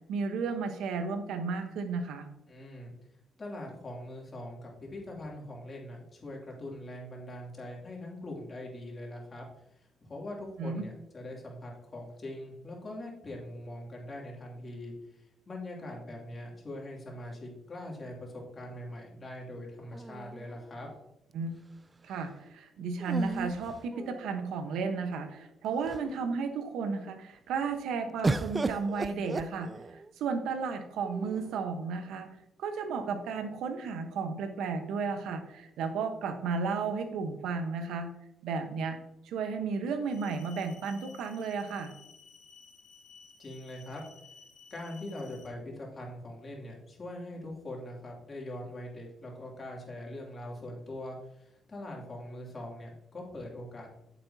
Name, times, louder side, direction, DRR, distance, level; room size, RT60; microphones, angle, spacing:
voice 1, 0.1-2.3 10.6-10.8 21.3-21.5 22.0-32.3 32.6-38.1 38.4-39.0 39.2-41.9, right 5 dB, 85° right, 7 dB, 1.1 m, -33 dB
voice 2, 2.5-2.9 3.4-9.4 9.7-20.9 43.4-44.0 44.7-53.9, left 1 dB, 35° left, -2 dB, 2.8 m, -42 dB
sound 1, 19.9-21.0 23.0-24.5 25.3-25.4 25.7-26.3 28.2-30.1 31.0-31.7, right 3 dB, 25° right, 0.3 m, -35 dB
sound 2, 40.0-45.5, left 5 dB, 80° left, 2.8 m, -55 dB
8.7 x 7.3 x 2.8 m, 0.85 s
cardioid pair, 90°, 0 cm